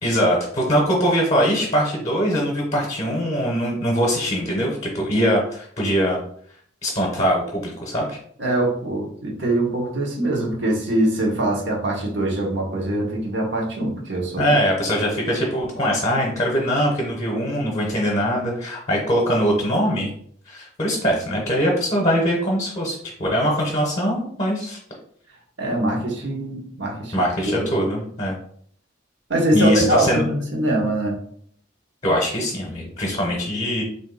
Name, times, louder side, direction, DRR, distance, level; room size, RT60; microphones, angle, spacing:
voice 1, 0.0-6.2 6.8-8.2 14.4-20.1 20.5-24.8 27.1-28.3 29.5-30.2 32.0-33.8, equal, 30° left, -2 dB, 0.8 m, -22 dB
voice 2, 8.4-14.4 25.6-27.5 29.3-31.2, right 1 dB, 65° right, -1 dB, 1.1 m, -23 dB
3.7 x 2.7 x 3.8 m, 0.63 s
head